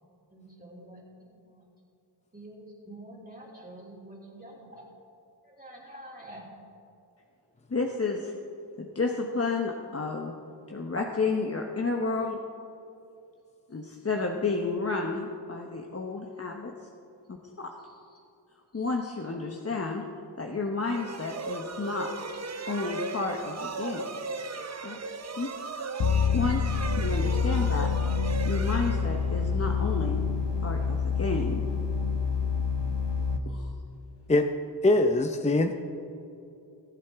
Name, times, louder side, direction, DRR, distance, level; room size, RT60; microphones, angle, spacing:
voice 1, 0.3-1.6 2.3-4.8 5.4-6.5 24.9-25.0, right 1 dB, 20° right, -6 dB, 3.1 m, -47 dB
voice 2, 7.7-8.3 8.8-10.3 10.7-12.4 13.7-16.7 17.3-17.7 18.7-20.0 20.4-22.1 22.6-24.1 24.8-25.0 25.4-25.5 26.3-27.9 28.4-30.2 30.6-31.6 33.5-33.7, left 3 dB, 35° left, 1 dB, 1.0 m, -31 dB
sound 1, 20.8-29.6, right 3 dB, 35° right, 0.7 m, -37 dB
sound 2, 26.0-33.4, left 5 dB, 65° left, 1.1 m, -27 dB
voice 3, 34.8-35.7, left 2 dB, 15° left, 6 dB, 0.6 m, -22 dB
21.0 x 8.3 x 3.6 m, 2.7 s
cardioid pair, 70°, 44 cm